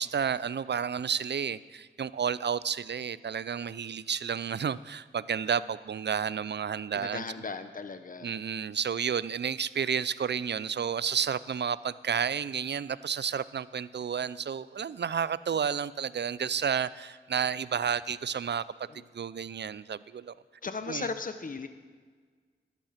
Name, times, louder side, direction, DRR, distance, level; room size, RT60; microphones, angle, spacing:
voice 1, 0.0-7.2 8.2-18.6 19.1-20.3 20.9-21.1, right 7 dB, 55° right, 18 dB, 0.5 m, -31 dB
voice 2, 6.9-8.3 18.9-19.1 20.6-21.7, left 4 dB, 40° left, 10 dB, 1.0 m, -37 dB
12.5 x 11.0 x 5.9 m, 1.5 s
cardioid pair, 40°, 21 cm